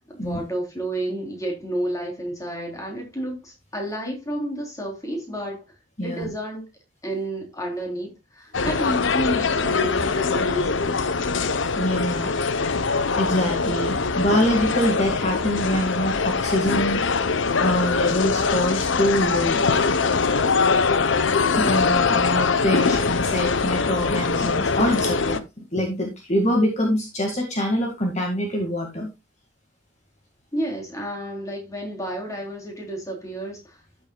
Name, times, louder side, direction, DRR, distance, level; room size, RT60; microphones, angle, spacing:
voice 1, 0.1-5.6 6.0-6.6 7.0-11.1 20.5-21.0 30.5-33.8, right 1 dB, 15° left, 3.5 m, -31 dB
voice 2, 6.0-6.3 11.7-12.4 13.2-17.0 17.6-19.6 21.6-29.1, equal, 35° left, 1.9 m, -24 dB
sound 1, 8.5-25.4, left 4 dB, 75° left, 0.8 m, -22 dB
13.5 x 7.5 x 2.3 m
head